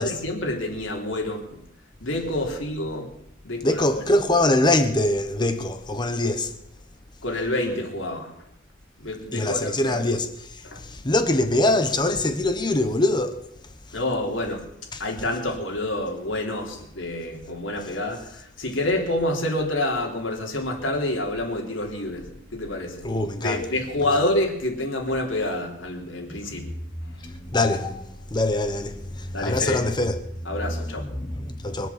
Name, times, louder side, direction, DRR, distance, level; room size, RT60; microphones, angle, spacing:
voice 1, 0.0-1.5 2.0-3.1 3.4-4.0 7.2-8.3 9.0-10.2 10.6-10.8 13.9-14.6 15.0-22.3 22.5-23.0 23.4-26.7 29.3-29.8 30.5-31.1, left 1 dB, 80° left, 3.6 m, -28 dB
voice 2, 3.6-6.5 9.3-13.4 13.9-14.0 14.9-15.0 23.0-23.7 24.0-24.2 26.3-26.4 27.2-31.9, left 2 dB, 25° left, 1.0 m, -24 dB
23.0 x 8.4 x 7.4 m
head